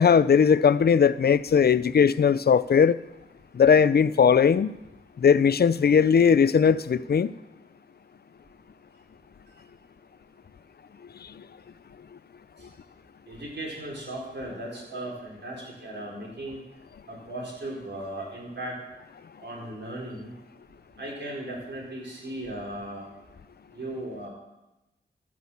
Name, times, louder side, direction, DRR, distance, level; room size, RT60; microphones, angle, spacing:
voice 1, 0.0-3.0 3.5-4.7 5.2-7.3, left 6 dB, 60° left, 17 dB, 0.5 m, -19 dB
voice 2, 13.3-16.6 17.1-18.8 19.4-20.3 21.0-23.1 23.7-24.3, right 1 dB, 70° right, -4 dB, 4.3 m, -37 dB
14.0 x 6.3 x 7.0 m, 0.97 s
wide cardioid pair, 70°, 19 cm